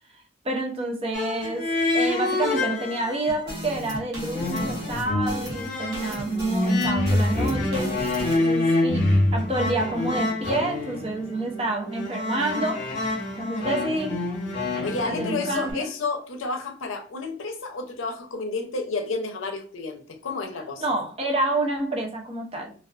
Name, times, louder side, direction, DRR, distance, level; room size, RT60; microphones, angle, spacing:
voice 1, 0.4-1.7 1.9-8.0 8.4-12.8 13.4-14.2 15.0-15.9 20.8-22.7, right 2 dB, 30° right, 0.5 m, -28 dB
sound 1, 1.1-3.4 3.7-15.7, left 2 dB, 40° left, 0.7 m, -26 dB
sound 2, 3.3-8.4, right 1 dB, 60° right, 0.8 m, -36 dB
voice 2, 14.8-20.8, left 3 dB, 80° left, 0.5 m, -31 dB
2.3 x 2.3 x 2.3 m
head